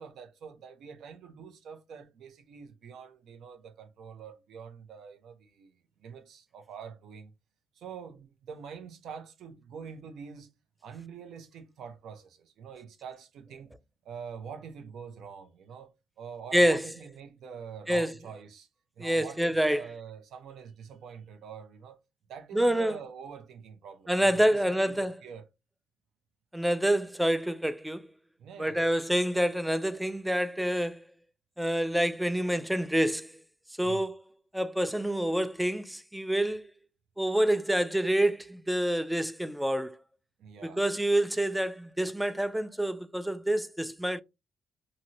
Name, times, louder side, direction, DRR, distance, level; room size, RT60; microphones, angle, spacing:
voice 1, 0.0-7.3 7.7-10.5 10.8-13.8 14.0-18.7 19.0-22.0 22.3-25.5 28.4-28.8 33.8-34.1 40.4-40.8, right 6 dB, 75° right, 0.6 m, -45 dB
voice 2, 19.0-19.8 22.5-22.9 24.1-25.1 26.5-28.1 28.6-31.0 31.6-33.3 33.8-34.2 34.5-36.6 37.2-40.0 40.6-44.2, right 1 dB, 5° right, 0.3 m, -27 dB
2.8 x 2.6 x 2.9 m
cardioid pair, 90°, 0 cm